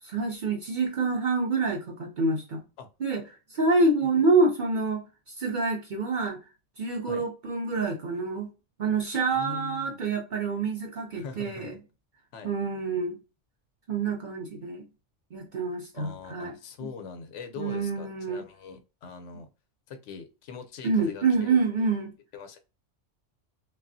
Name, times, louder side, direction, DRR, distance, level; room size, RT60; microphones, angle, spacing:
voice 1, 0.0-2.6 3.0-6.4 6.8-8.5 8.8-11.8 12.4-13.2 13.9-14.9 15.3-16.9 17.6-18.5 20.8-22.1, right 3 dB, 50° right, 0.6 m, -27 dB
voice 2, 9.3-10.0 11.1-11.7 12.3-12.5 15.9-19.5 19.9-21.9 22.3-22.6, left 5 dB, 75° left, 0.9 m, -42 dB
3.2 x 2.3 x 2.5 m
omnidirectional pair, 1.3 m